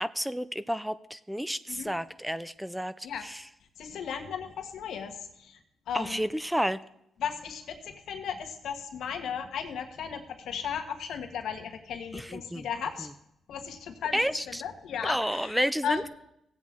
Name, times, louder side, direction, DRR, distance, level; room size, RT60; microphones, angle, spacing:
voice 1, 0.0-3.4 5.9-6.8 12.1-12.7 14.1-14.6 15.0-16.1, equal, 5° right, 14 dB, 0.4 m, -31 dB
voice 2, 3.8-5.6 5.9-6.2 7.2-13.1 13.5-15.6 15.8-16.1, left 7 dB, 80° left, 5 dB, 1.5 m, -36 dB
16.0 x 8.2 x 3.6 m, 0.79 s
cardioid pair, 85°, 0 cm